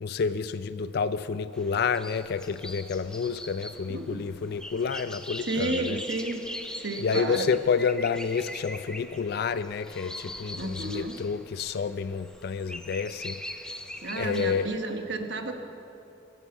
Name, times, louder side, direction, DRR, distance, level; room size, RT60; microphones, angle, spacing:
voice 1, 0.0-6.0 7.0-13.7 14.1-14.7, left 5 dB, 55° left, 12 dB, 0.4 m, -29 dB
sound 1, 1.5-14.7, left 1 dB, 5° left, 0.8 m, -41 dB
voice 2, 3.9-4.2 5.4-6.5 6.7-7.5 10.6-11.2 14.0-15.5, right 2 dB, 65° right, 5 dB, 1.2 m, -32 dB
22.5 x 8.3 x 7.1 m, 2.8 s
head